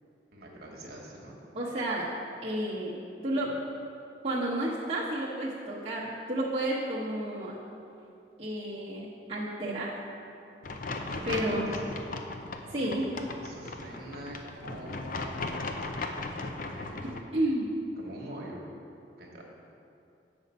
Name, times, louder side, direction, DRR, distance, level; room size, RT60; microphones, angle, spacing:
voice 1, 0.3-1.4 11.1-11.9 12.7-12.8 13.3-15.7 16.3-17.3 18.0-18.6 19.2-19.4, right 1 dB, 60° right, -2 dB, 1.2 m, -44 dB
voice 2, 1.5-2.1 2.4-3.0 3.2-3.5 4.2-7.6 8.4-9.9 11.3-11.7 12.7-13.1 17.0-17.7, right 1 dB, 35° right, -7 dB, 1.0 m, -31 dB
sound 1, 10.6-17.2, left 3 dB, 50° left, 0.5 m, -37 dB
7.2 x 5.2 x 5.4 m, 2.6 s
head